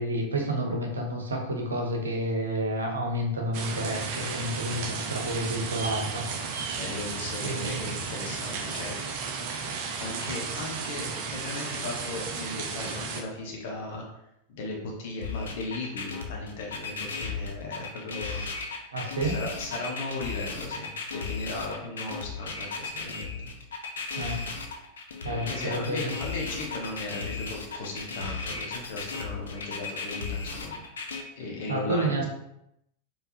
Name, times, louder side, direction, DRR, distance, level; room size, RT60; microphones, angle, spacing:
voice 1, 0.0-6.3 7.4-7.9 18.9-19.4 24.2-24.4 25.2-26.1 31.7-32.3, right 1 dB, 70° right, 1 dB, 0.9 m, -30 dB
sound 1, 3.5-13.2, right 5 dB, 45° right, 0.6 m, -34 dB
voice 2, 6.7-9.1 10.0-14.0 14.5-18.4 19.0-23.3 25.3-30.8 31.4-32.3, left 2 dB, 50° left, -1 dB, 1.1 m, -37 dB
sound 2, 15.2-31.2, left 4 dB, 65° left, 0.6 m, -35 dB
4.7 x 3.4 x 2.7 m, 0.80 s
figure-of-eight pair, 90°, 0 cm